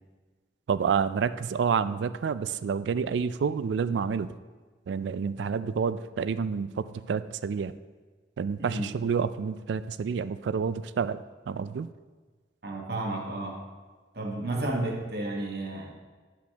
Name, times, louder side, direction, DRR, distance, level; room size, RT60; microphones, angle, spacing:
voice 1, 0.7-4.3 4.9-7.7 8.4-11.9, right 6 dB, 75° right, 14 dB, 0.3 m, -29 dB
voice 2, 8.6-8.9 12.6-13.6 14.1-15.9, right 2 dB, 55° right, 0 dB, 1.3 m, -32 dB
10.5 x 5.0 x 3.4 m, 1.4 s
head